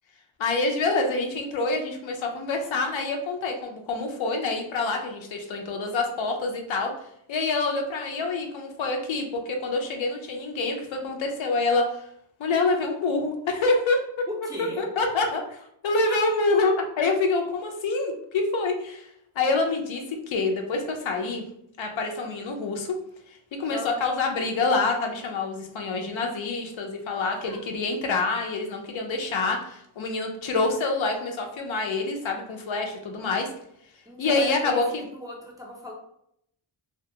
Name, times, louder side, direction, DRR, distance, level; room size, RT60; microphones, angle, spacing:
voice 1, 0.4-6.9 7.3-11.8 12.4-14.3 14.8-15.6 15.8-19.1 19.4-21.4 21.8-23.0 23.6-33.5 34.2-35.0, left 3 dB, 75° left, 3 dB, 0.6 m, -26 dB
voice 2, 14.4-14.8 16.1-16.2 23.7-24.0 27.2-28.0 34.1-34.8 35.1-35.9, left 1 dB, 10° right, -3 dB, 0.5 m, -37 dB
2.2 x 2.2 x 2.7 m, 0.73 s
wide cardioid pair, 115°, 47 cm